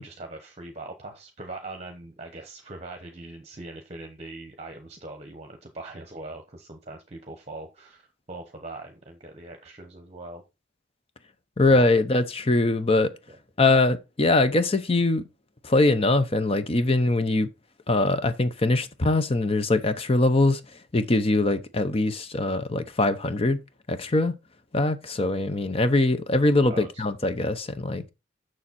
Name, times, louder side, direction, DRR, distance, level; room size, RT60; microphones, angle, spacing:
voice 1, 0.0-10.4 11.7-11.9 26.7-27.0, right 2 dB, 35° right, 1.0 m, -41 dB
voice 2, 11.6-13.1 13.6-15.3 15.6-17.5 17.9-20.6 20.9-23.6 23.9-24.3 24.7-28.1, left 2 dB, 30° left, 0.7 m, -22 dB
7.1 x 6.3 x 4.2 m
head